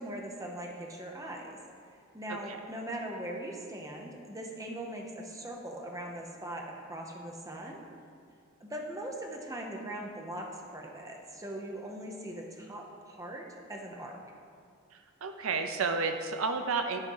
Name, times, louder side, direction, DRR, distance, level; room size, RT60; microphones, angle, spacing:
voice 1, 0.0-1.6 2.1-7.8 8.6-14.2, right 1 dB, 15° right, 0 dB, 0.8 m, -40 dB
voice 2, 15.2-17.0, right 4 dB, 75° right, 7 dB, 0.5 m, -31 dB
10.5 x 4.5 x 5.5 m, 2.3 s
head